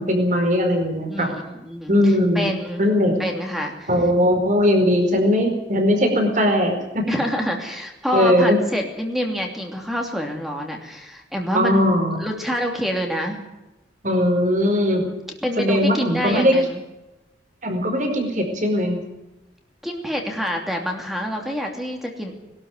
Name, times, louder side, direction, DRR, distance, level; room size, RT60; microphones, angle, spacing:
voice 1, 0.0-1.3 1.9-2.5 2.8-3.3 3.9-7.0 8.1-8.6 11.5-12.2 14.0-15.1 15.6-16.5 17.6-19.0, equal, 45° right, 4 dB, 4.7 m, -19 dB
voice 2, 1.1-2.9 3.2-3.9 7.1-11.9 12.2-13.4 15.0-15.2 15.4-16.8 19.8-22.3, equal, ahead, 2 dB, 2.8 m, -27 dB
21.5 x 13.0 x 9.5 m, 0.99 s
head